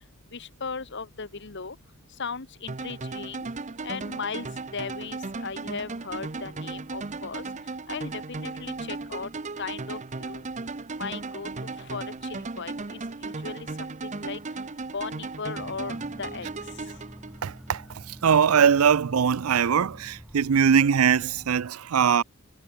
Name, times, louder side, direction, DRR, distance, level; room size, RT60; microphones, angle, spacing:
voice 1, 0.3-1.7 2.2-3.5 3.8-4.5 4.7-7.4 7.9-9.3 9.6-10.4 11.0-11.5 11.9-12.0 12.6-13.7 14.0-14.4 14.9-16.5, left 5 dB, 55° left, 1.4 m, -36 dB
sound 1, 2.7-17.7, right 3 dB, 35° right, 0.8 m, -36 dB
sound 2, 15.5-21.7, equal, ahead, 1.2 m, -47 dB
voice 2, 17.4-22.2, right 7 dB, 85° right, 0.5 m, -21 dB
head